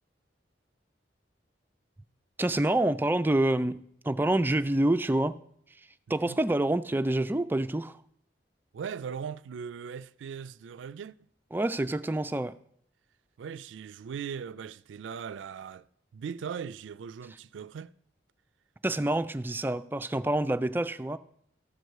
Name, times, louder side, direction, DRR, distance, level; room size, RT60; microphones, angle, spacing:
voice 1, 2.4-5.4 6.1-8.0 11.5-12.6 18.8-21.2, right 1 dB, 10° right, 0.3 m, -27 dB
voice 2, 8.7-11.2 13.4-15.8 16.1-17.9, right 7 dB, 85° right, 0.3 m, -39 dB
13.5 x 4.7 x 6.5 m
head